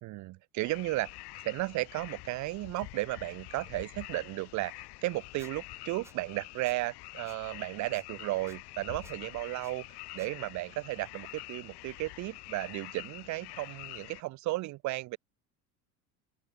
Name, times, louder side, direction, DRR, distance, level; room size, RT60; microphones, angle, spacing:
voice 1, 0.0-1.1 1.4-9.8 10.1-15.2, right 19 dB, 40° right, 0.5 m, -34 dB
sound 1, 0.6-14.2, left 22 dB, 55° left, 1.6 m, -47 dB
Squeak, 5.4-5.5 6.0-6.2 6.6-6.8 7.3-7.4 7.9-8.0 8.5-8.6 9.0-9.2 9.6-9.7 10.2-10.3, right 2 dB, 5° right, 0.7 m, -55 dB
open air
hypercardioid pair, 70°, 47 cm